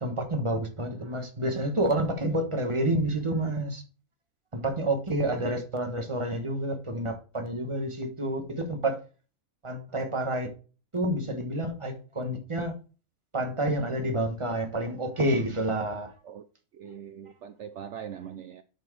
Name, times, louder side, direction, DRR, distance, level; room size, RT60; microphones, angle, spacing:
voice 1, 0.0-3.8 4.5-9.0 9.6-10.5 10.9-12.7 13.3-16.1, right 1 dB, 20° right, 1.2 m, -29 dB
voice 2, 16.8-18.6, right 8 dB, 65° right, 0.7 m, -41 dB
9.2 x 4.5 x 4.6 m
omnidirectional pair, 1.6 m